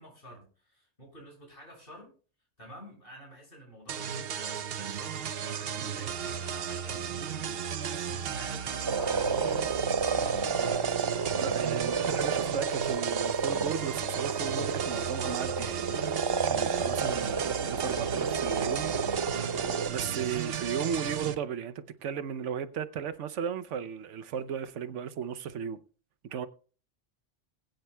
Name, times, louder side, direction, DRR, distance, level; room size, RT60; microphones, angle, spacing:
voice 1, 0.0-2.1 2.6-10.9, equal, 50° left, 6.7 m, -50 dB
sound 1, 3.9-21.3, right 8 dB, 60° right, 0.9 m, -35 dB
sound 2, 8.9-19.9, right 5 dB, 35° right, 0.4 m, -31 dB
voice 2, 11.4-19.5 19.9-25.8 26.3-26.5, right 7 dB, 90° right, 1.1 m, -35 dB
20.5 x 9.2 x 2.2 m
omnidirectional pair, 1.2 m